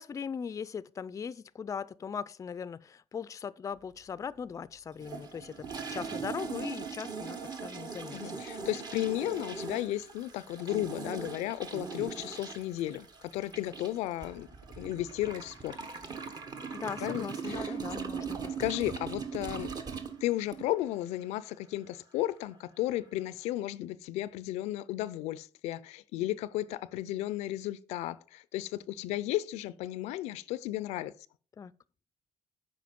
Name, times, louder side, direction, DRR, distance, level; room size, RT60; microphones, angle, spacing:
voice 1, 0.0-8.4 16.7-18.5 31.6-31.7, left 6 dB, 30° left, 0.4 m, -39 dB
sound 1, 5.0-20.9, right 5 dB, 40° right, 1.1 m, -40 dB
voice 2, 8.1-13.1 13.3-14.5 14.8-15.8 17.0-17.7 18.6-19.7 20.2-31.1, left 15 dB, 90° left, 0.4 m, -34 dB
7.7 x 5.0 x 5.2 m
cardioid pair, 95°, 11 cm